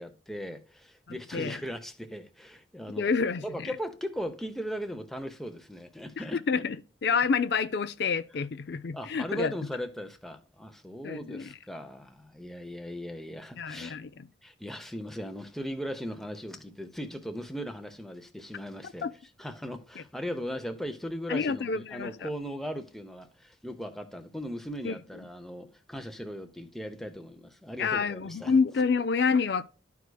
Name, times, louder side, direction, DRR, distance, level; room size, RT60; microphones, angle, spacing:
voice 1, 0.0-3.1 3.4-6.6 8.9-14.0 14.4-19.1 19.4-28.5, equal, ahead, 0.6 m, -38 dB
voice 2, 2.9-3.7 6.2-6.8 7.0-9.5 11.0-11.5 13.6-14.3 19.0-19.1 21.3-22.3 24.8-25.0 27.8-29.6, left 5 dB, 55° left, 0.4 m, -28 dB
12.5 x 4.7 x 2.2 m
head